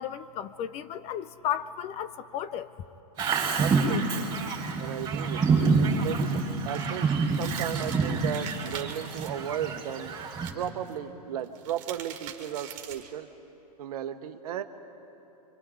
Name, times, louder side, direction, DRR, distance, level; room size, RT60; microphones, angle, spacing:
voice 1, 0.0-2.7, left 10 dB, 30° left, 14 dB, 0.6 m, -34 dB
Bird vocalization bird call bird song, 3.2-10.5, right 4 dB, 20° right, 3.3 m, -27 dB
voice 2, 3.6-4.3 4.8-7.1 7.4-10.2 10.5-13.3 13.8-14.6, right 10 dB, 70° right, 8 dB, 1.2 m, -35 dB
sound 1, 5.9-9.3 10.4-10.9 11.4-13.2, right 9 dB, 40° right, 2.2 m, -44 dB
30.0 x 24.5 x 3.8 m, 2.9 s
hypercardioid pair, 130°, 20 cm